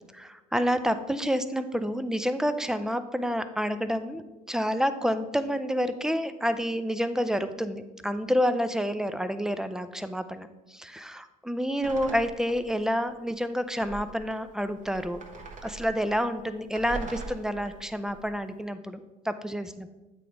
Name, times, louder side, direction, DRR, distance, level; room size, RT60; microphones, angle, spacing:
voice 1, 0.1-15.2 15.6-19.9, equal, 5° right, 11 dB, 0.5 m, -29 dB
sound 1, 11.8-12.8 13.1-13.2 13.8-18.3, right 4 dB, 45° right, 1.3 m, -42 dB
8.4 x 3.3 x 4.9 m, 1.1 s
hypercardioid pair, 65°, 18 cm